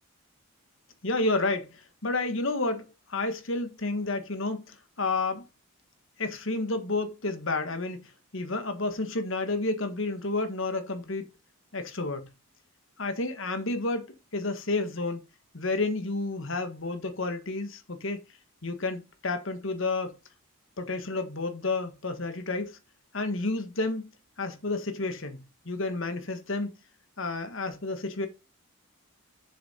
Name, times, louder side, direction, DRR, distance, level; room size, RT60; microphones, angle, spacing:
voice 1, 1.0-5.5 6.2-8.0 8.3-11.3 11.7-12.3 13.0-15.2 15.5-18.2 18.6-20.2 20.8-22.8 23.1-24.1 24.4-26.7 27.2-28.3, left 3 dB, 60° left, 1.5 m, -30 dB
7.3 x 6.9 x 4.3 m
head